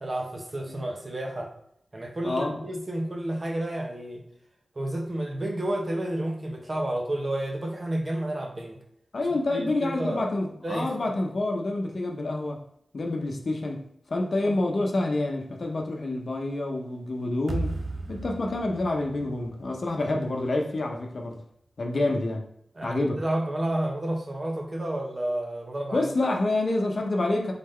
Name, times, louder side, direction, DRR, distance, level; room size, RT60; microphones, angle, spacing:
voice 1, 0.0-1.5 1.9-4.2 4.8-8.8 9.5-10.2 10.6-10.9 14.4-14.6 22.8-26.1, right 1 dB, 45° right, 1 dB, 1.0 m, -30 dB
voice 2, 2.2-2.6 9.1-12.6 12.9-17.8 18.1-21.4 21.8-22.5 22.8-23.2 25.9-27.5, left 2 dB, 65° left, 2 dB, 0.7 m, -28 dB
sound 1, 17.5-20.6, right 2 dB, 75° right, 0.6 m, -35 dB
4.0 x 3.6 x 3.3 m, 0.74 s
cardioid pair, 50°, 0 cm